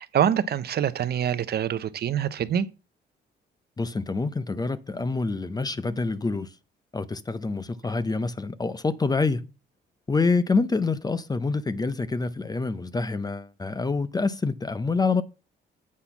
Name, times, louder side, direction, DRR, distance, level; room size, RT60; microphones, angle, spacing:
voice 1, 0.0-2.7, right 9 dB, 55° right, 0.6 m, -25 dB
voice 2, 3.8-6.5 6.9-9.4 10.1-15.2, left 3 dB, 20° left, 0.5 m, -26 dB
8.3 x 4.0 x 5.8 m
cardioid pair, 90°, 20 cm